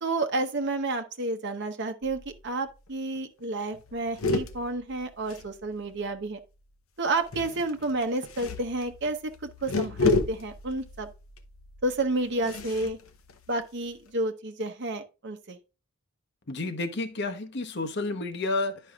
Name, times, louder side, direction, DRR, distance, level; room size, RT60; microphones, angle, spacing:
voice 1, 0.0-6.4 7.0-11.1 11.8-13.0 13.5-15.6, right 2 dB, 55° right, 0.9 m, -30 dB
sound 1, 2.0-2.5 2.8-2.9 3.2-3.4 3.7-6.1 7.2-14.1, left 3 dB, 90° left, 0.9 m, -32 dB
voice 2, 16.5-18.9, left 2 dB, 55° left, 1.0 m, -31 dB
11.0 x 5.4 x 2.4 m
head